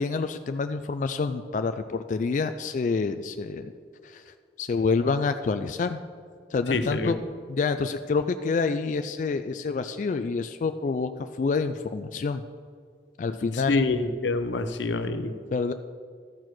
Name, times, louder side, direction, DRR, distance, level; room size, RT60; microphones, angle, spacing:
voice 1, 0.0-3.7 4.0-4.2 4.6-6.0 6.5-7.2 7.5-11.1 11.4-12.4 13.2-13.8 15.5-15.7, left 4 dB, 45° left, 8 dB, 0.3 m, -27 dB
voice 2, 6.7-7.2 13.7-15.3, left 3 dB, 85° left, 10 dB, 0.7 m, -26 dB
13.5 x 4.8 x 6.0 m, 2.1 s
head